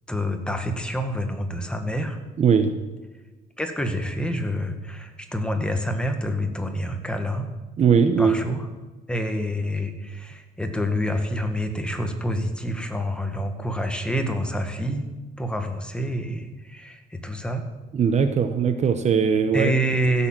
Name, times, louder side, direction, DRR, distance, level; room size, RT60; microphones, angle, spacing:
voice 1, 0.1-2.2 3.6-7.5 8.2-8.7 9.1-15.1 15.4-17.6 19.5-20.3, equal, 5° left, 5 dB, 1.8 m, -27 dB
voice 2, 2.4-2.7 7.8-8.4 17.9-19.7, right 6 dB, 40° right, 9 dB, 1.0 m, -20 dB
15.5 x 7.2 x 7.5 m, 1.2 s
cardioid pair, 110°, 17 cm